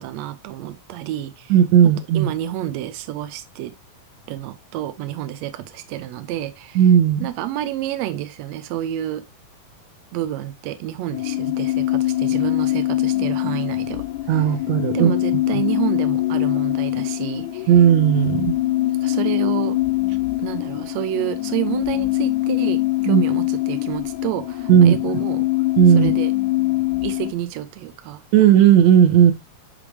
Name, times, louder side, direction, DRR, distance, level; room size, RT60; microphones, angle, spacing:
voice 1, 0.0-1.5 2.1-3.7 4.3-6.8 7.2-9.2 10.1-14.0 14.9-17.7 19.0-19.8 20.4-25.5 26.0-26.3 27.0-28.2, right 13 dB, 85° right, 1.5 m, -29 dB
voice 2, 1.5-2.3 6.8-7.3 14.3-15.1 15.5-15.6 17.7-18.5 23.1-23.2 24.7-25.0 25.8-26.1 28.3-29.3, right 9 dB, 65° right, 2.0 m, -14 dB
sound 1, 11.1-27.3, left 17 dB, 75° left, 1.7 m, -23 dB
10.0 x 3.4 x 3.4 m
omnidirectional pair, 3.8 m